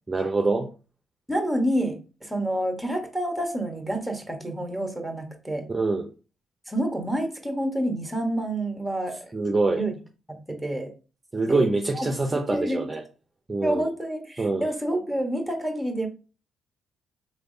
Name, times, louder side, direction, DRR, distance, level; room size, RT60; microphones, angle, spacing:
voice 1, 0.1-0.7 5.7-6.1 9.3-9.9 11.3-13.0 13.5-13.9 14.4-14.7, right 3 dB, 20° right, 0.6 m, -25 dB
voice 2, 1.3-5.7 6.7-9.2 9.7-10.0 10.3-10.9 11.5-11.7 11.9-12.9 13.6-16.1, right 1 dB, ahead, 1.1 m, -28 dB
4.0 x 3.3 x 2.7 m
cardioid pair, 90°, 0 cm